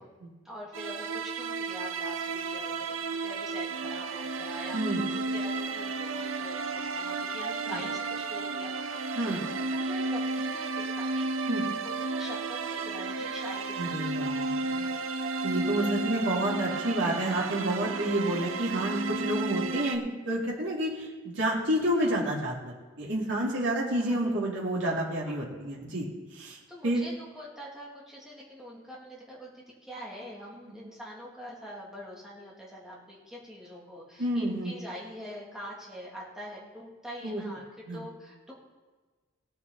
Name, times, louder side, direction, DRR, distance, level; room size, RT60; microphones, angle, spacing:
voice 1, 0.4-4.8 5.1-11.3 11.8-14.6 15.8-15.9 24.0-24.2 25.3-25.4 26.7-37.6 37.9-38.5, equal, ahead, -5 dB, 2.7 m, -44 dB
sound 1, 0.7-20.0, right 3 dB, 75° right, 0.8 m, -33 dB
voice 2, 13.8-14.9 15.4-26.1 26.3-26.6 26.8-27.0 34.2-34.7 37.2-37.4 37.9-38.0, right 1 dB, 60° right, -4 dB, 2.7 m, -29 dB
17.0 x 8.8 x 4.1 m, 1.3 s
head